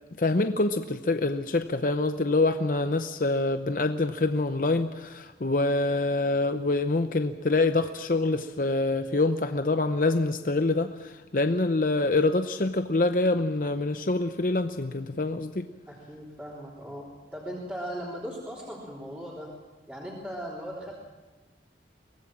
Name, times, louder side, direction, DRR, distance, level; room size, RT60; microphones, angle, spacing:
voice 1, 0.2-15.7, left 2 dB, 50° left, 8 dB, 0.7 m, -26 dB
voice 2, 15.9-19.5 19.9-20.9, equal, 10° right, -5 dB, 3.5 m, -38 dB
23.5 x 18.0 x 7.5 m, 1.2 s
head